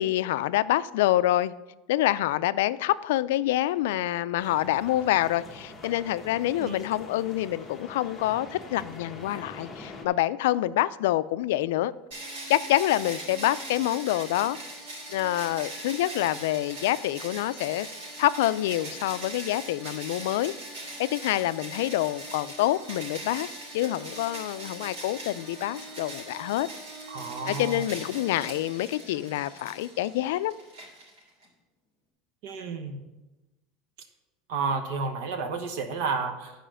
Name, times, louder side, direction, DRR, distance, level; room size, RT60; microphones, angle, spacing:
voice 1, 0.0-1.5 1.9-11.9 12.5-14.6 15.1-17.9 18.2-26.7 27.5-30.6, left 14 dB, 85° left, 0.3 m, -27 dB
sound 1, 4.4-10.1, left 2 dB, 10° left, 1.0 m, -44 dB
sound 2, 12.1-31.5, right 1 dB, 85° right, 3.2 m, -41 dB
voice 2, 27.1-27.8 32.4-33.0 34.5-36.5, right 4 dB, 65° right, 1.0 m, -31 dB
10.0 x 4.9 x 6.3 m
supercardioid pair, 165°, 0 cm